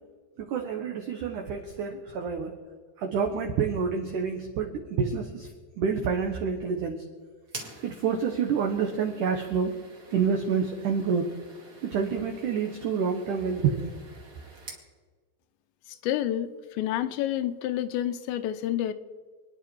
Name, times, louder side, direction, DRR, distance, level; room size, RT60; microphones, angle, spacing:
voice 1, 0.4-2.5 3.0-5.5 5.8-7.1 7.8-9.7 10.1-11.3 11.8-13.9, right 6 dB, 80° right, 4 dB, 1.8 m, -28 dB
sound 1, 7.4-14.9, right 2 dB, 35° right, 1.7 m, -48 dB
voice 2, 15.9-18.9, left 12 dB, 80° left, 11 dB, 2.9 m, -29 dB
28.0 x 10.0 x 4.5 m, 1.5 s
omnidirectional pair, 5.2 m